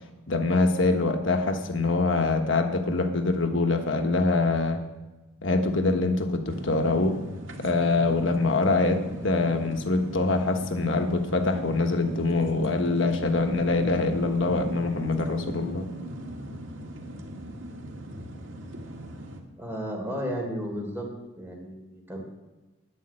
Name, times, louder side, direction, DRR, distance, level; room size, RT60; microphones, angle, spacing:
voice 1, 0.3-4.8 5.4-7.2 7.6-15.9, left 3 dB, 65° left, 6 dB, 1.2 m, -24 dB
sound 1, 6.4-19.4, right 1 dB, 65° right, 2.0 m, -40 dB
voice 2, 19.6-21.1 21.4-22.2, equal, 10° right, 0 dB, 3.2 m, -33 dB
11.0 x 8.6 x 9.8 m, 1.1 s
head